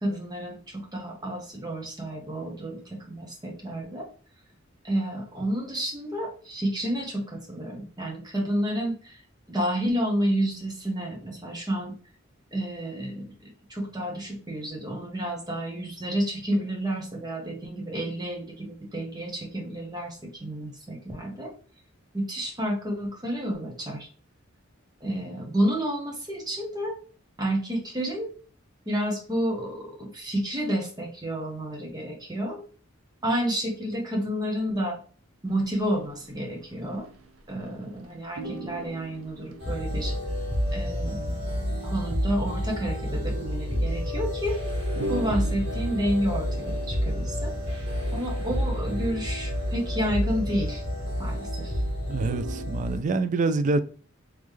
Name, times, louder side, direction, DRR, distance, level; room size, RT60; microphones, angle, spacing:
voice 1, 0.0-4.0 4.8-9.2 9.5-11.9 12.5-21.5 22.1-24.1 25.0-27.0 27.4-28.3 28.9-32.6 33.2-35.0 35.4-37.1 37.5-40.1 40.7-41.3 41.8-44.6 45.1-47.5 48.1-50.8 51.2-51.8, equal, 20° right, 1.1 m, -30 dB
sound 1, 35.5-37.7 38.0-38.1 38.4-51.6 51.9-52.7, right 3 dB, 85° right, 0.7 m, -43 dB
sound 2, 39.6-53.0, equal, 55° right, 1.8 m, -29 dB
voice 2, 52.1-53.8, right 3 dB, 40° right, 0.3 m, -26 dB
3.7 x 3.1 x 3.2 m
head